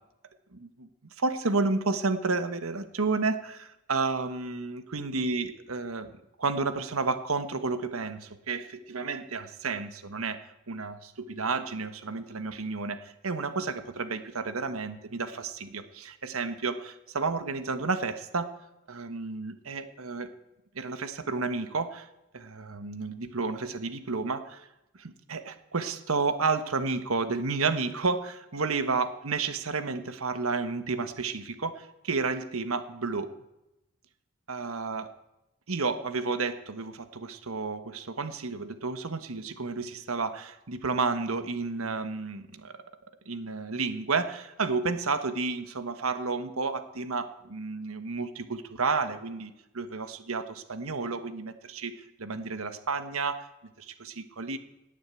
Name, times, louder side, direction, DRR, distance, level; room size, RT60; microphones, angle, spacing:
voice 1, 0.5-0.9 1.2-6.1 6.4-18.5 18.9-20.3 20.7-22.1 22.3-24.7 25.0-33.3 34.5-35.1 35.7-42.8 43.2-51.9 52.2-53.5 53.8-54.6, right 4 dB, 85° right, 10 dB, 1.3 m, -31 dB
18.0 x 9.1 x 8.3 m, 0.91 s
head